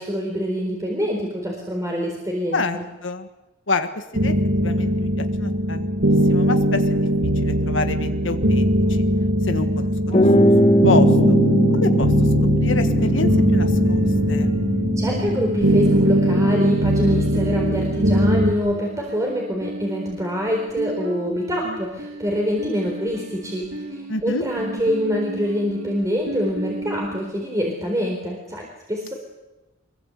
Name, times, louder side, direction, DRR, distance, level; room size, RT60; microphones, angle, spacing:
voice 1, 0.0-2.8 15.0-29.1, equal, 15° right, 0 dB, 4.3 m, -25 dB
voice 2, 2.5-3.3 3.7-4.3 4.6-5.9 6.3-7.1 7.4-9.0 9.4-10.5 10.8-11.4 11.7-12.1 12.6-14.0 14.3-14.5 24.1-24.4, left 3 dB, 80° left, 7 dB, 1.7 m, -27 dB
sound 1, 4.1-18.5, equal, 70° right, 2.5 m, -20 dB
sound 2, 10.1-17.8, equal, 35° left, 2.6 m, -21 dB
sound 3, 12.8-27.2, right 1 dB, 85° right, 2.9 m, -35 dB
25.0 x 22.5 x 8.2 m, 1.0 s
head